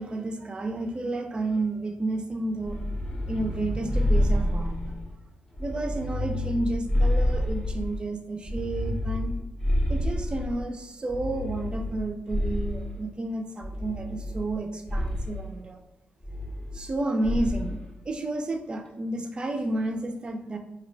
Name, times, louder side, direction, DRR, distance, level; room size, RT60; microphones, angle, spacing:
voice 1, 0.0-2.8 3.2-5.0 5.6-9.3 9.9-15.8 16.7-17.8 18.1-20.6, right 2 dB, 25° right, 5 dB, 0.4 m, -31 dB
sound 1, 2.6-5.1 5.5-8.0 8.4-10.6 11.1-13.0 13.6-14.6 14.9-15.4 16.2-17.0 17.2-17.7, left 1 dB, 25° left, 0.6 m, -28 dB
2.6 x 2.0 x 3.8 m, 0.91 s
cardioid pair, 110°, 4 cm